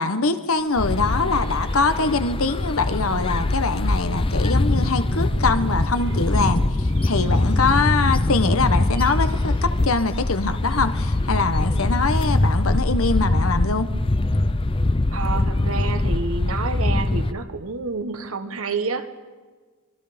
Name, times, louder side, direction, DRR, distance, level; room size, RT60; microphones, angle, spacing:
voice 1, 0.0-13.9, left 3 dB, 75° left, 10 dB, 1.2 m, -23 dB
sound 1, 0.6-12.8, right 1 dB, 60° right, 1.3 m, -41 dB
sound 2, 0.8-17.3, left 2 dB, 25° left, 0.6 m, -22 dB
voice 2, 15.1-19.1, right 4 dB, 80° right, 9 dB, 1.5 m, -29 dB
25.5 x 22.0 x 5.2 m, 1.4 s
head